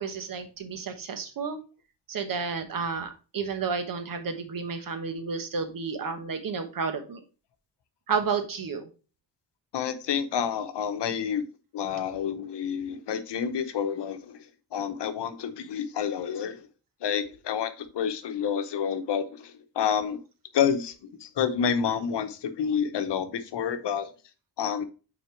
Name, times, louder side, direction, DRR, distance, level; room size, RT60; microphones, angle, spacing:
voice 1, 0.0-1.6 2.1-7.2 8.1-8.8, right 5 dB, 55° right, 8 dB, 1.1 m, -31 dB
voice 2, 9.7-11.4 11.7-14.4 14.7-16.6 17.0-19.5 19.8-20.2 20.5-20.9 21.2-24.1 24.6-24.8, left 8 dB, 85° left, 9 dB, 0.9 m, -29 dB
5.9 x 4.3 x 4.4 m, 0.35 s
wide cardioid pair, 165°, 40 cm